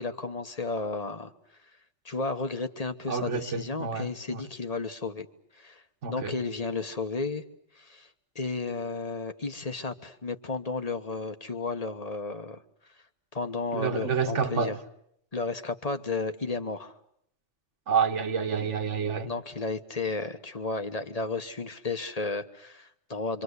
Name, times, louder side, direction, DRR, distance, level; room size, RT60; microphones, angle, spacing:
voice 1, 0.0-1.3 2.0-5.3 5.5-5.8 6.1-7.5 7.7-8.1 8.3-12.6 13.3-14.8 15.3-16.9 19.2-23.4, left 3 dB, 35° left, 1.3 m, -33 dB
voice 2, 3.1-4.4 6.0-6.4 13.7-14.7 17.9-19.3, right 6 dB, 80° right, 1.7 m, -28 dB
27.5 x 25.0 x 8.2 m
omnidirectional pair, 1.2 m